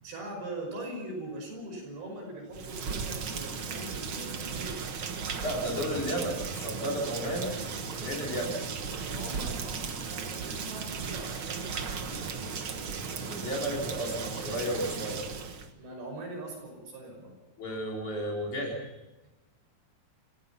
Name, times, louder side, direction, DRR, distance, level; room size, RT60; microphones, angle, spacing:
voice 1, 0.0-4.8 9.0-12.3 15.8-17.4 19.2-19.3, right 1 dB, 65° right, 2 dB, 7.4 m, -41 dB
Rain, 2.5-15.7, right 5 dB, 90° right, 1.1 m, -36 dB
voice 2, 5.4-7.6 8.0-8.6 13.3-15.2 17.6-18.9, equal, 45° left, -1 dB, 5.4 m, -33 dB
28.5 x 16.0 x 5.8 m, 1.0 s
omnidirectional pair, 4.8 m